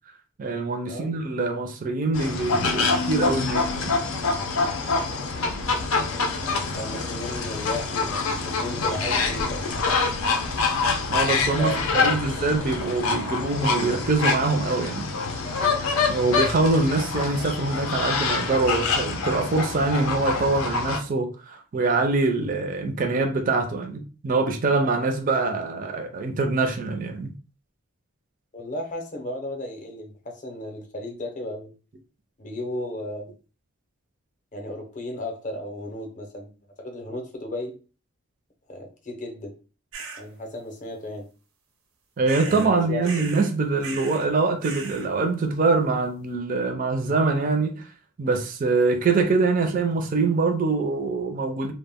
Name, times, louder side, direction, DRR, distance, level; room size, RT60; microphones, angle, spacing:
voice 1, 0.4-4.0 11.1-15.1 16.1-27.3 42.2-47.9 48.2-51.7, right 3 dB, 40° right, 0.4 m, -24 dB
sound 1, 2.1-21.0, left 4 dB, 80° left, 0.5 m, -26 dB
voice 2, 6.7-9.9 11.6-12.1 28.5-31.7 32.4-33.3 34.5-36.5 36.8-37.7 38.7-39.6 40.2-41.3 42.5-43.3, left 1 dB, 35° left, 0.6 m, -34 dB
sound 2, 39.9-40.2 42.3-42.7 43.0-43.5 43.8-44.3 44.6-45.1, right 5 dB, 85° right, 0.6 m, -37 dB
2.1 x 2.1 x 3.4 m
head